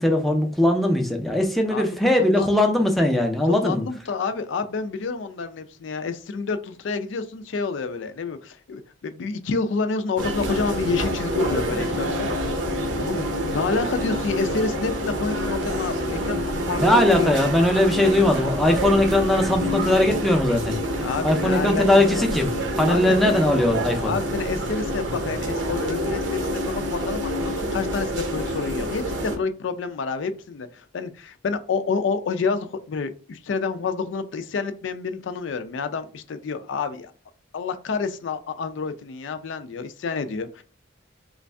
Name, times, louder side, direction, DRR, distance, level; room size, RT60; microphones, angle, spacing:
voice 1, 0.0-3.8 16.7-20.8 21.2-22.5 22.8-24.1, left 1 dB, ahead, 0.5 m, -20 dB
voice 2, 3.5-12.3 13.0-17.4 21.0-21.9 22.1-22.3 22.9-23.0 24.0-37.1 37.5-40.6, left 4 dB, 75° left, 0.4 m, -28 dB
sound 1, 10.2-29.4, equal, 70° right, 0.8 m, -27 dB
3.1 x 2.6 x 3.3 m
head